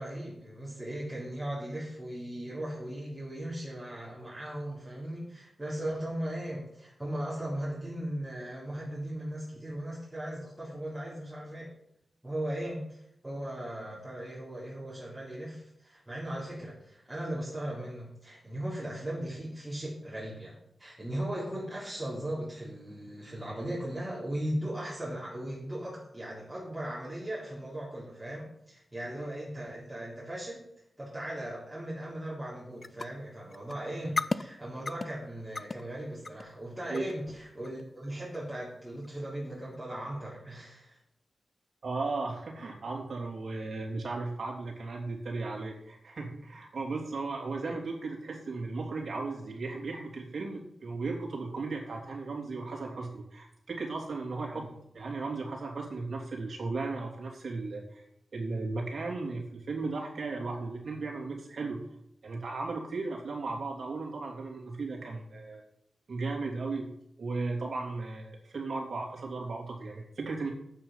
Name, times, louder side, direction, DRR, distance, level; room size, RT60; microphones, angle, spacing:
voice 1, 0.0-11.7 12.2-30.6 31.0-41.0 47.6-47.7 54.5-54.7, right 1 dB, 10° right, -7 dB, 3.6 m, -38 dB
sound 1, 32.8-33.0 33.3-33.7 34.0-34.4 34.9-35.1 35.6-35.8 36.2-36.5 36.9-37.2 37.6-37.9 38.3-38.6 39.0-39.2 39.7-39.8, left 3 dB, 40° left, 0.5 m, -33 dB
voice 2, 41.8-54.6 54.9-58.0 58.3-61.8 62.2-65.6 66.1-66.9 67.2-70.5, right 3 dB, 65° right, -1 dB, 3.2 m, -36 dB
8.9 x 8.4 x 5.7 m, 0.75 s
cardioid pair, 70°, 0 cm